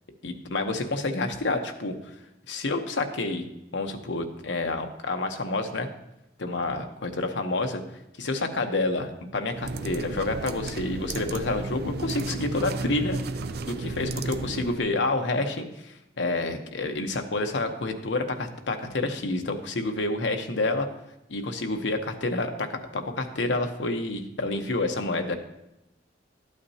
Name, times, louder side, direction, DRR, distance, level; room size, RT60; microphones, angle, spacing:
voice 1, 0.2-1.9 2.5-3.4 3.7-5.9 6.4-7.8 8.2-13.2 13.6-20.9 21.3-25.3, left 2 dB, 80° left, 5 dB, 0.9 m, -28 dB
sound 1, 9.5-14.9, right 3 dB, 60° right, 0.5 m, -33 dB
12.0 x 8.5 x 2.8 m, 0.88 s
head